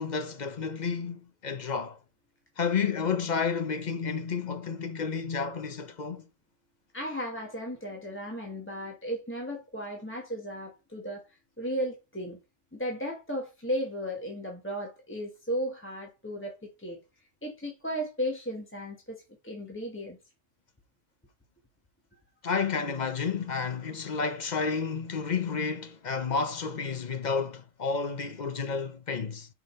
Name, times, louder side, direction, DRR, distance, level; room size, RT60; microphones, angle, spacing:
voice 1, 0.0-2.0 2.6-6.3 22.4-29.5, left 5 dB, 45° left, 0.7 m, -31 dB
voice 2, 6.9-11.3 11.6-12.4 12.7-17.0 17.4-20.2, equal, 10° left, 1.3 m, -35 dB
6.0 x 5.1 x 4.3 m
omnidirectional pair, 1.3 m